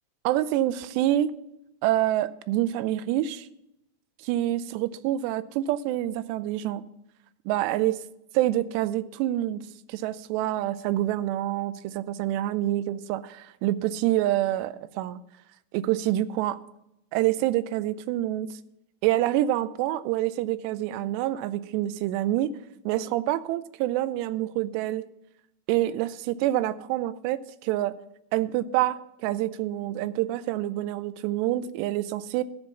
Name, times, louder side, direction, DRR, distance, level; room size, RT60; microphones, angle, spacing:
voice 1, 0.2-1.3 1.8-3.5 4.2-6.8 7.5-8.0 8.3-9.6 9.9-15.2 15.7-16.6 17.1-18.5 19.0-22.5 22.9-25.1 25.7-27.9 28.3-32.4, right 14 dB, 85° right, 14 dB, 2.6 m, -27 dB
14.0 x 5.0 x 6.9 m, 0.83 s
omnidirectional pair, 4.9 m